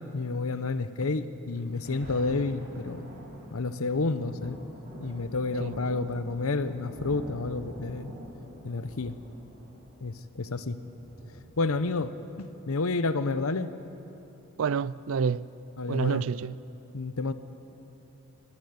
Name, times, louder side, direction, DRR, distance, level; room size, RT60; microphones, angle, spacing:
voice 1, 0.0-3.1 3.5-4.6 5.0-8.1 8.6-9.2 10.0-10.8 11.6-12.1 12.4-13.7 15.8-16.2 16.9-17.3, left 3 dB, 75° left, 0.8 m, -30 dB
Thunder, 1.5-12.5 13.1-13.2, equal, 45° right, 4.0 m, -46 dB
voice 2, 14.6-15.5 15.9-16.5, right 6 dB, 70° right, 0.4 m, -28 dB
21.0 x 13.0 x 9.4 m
head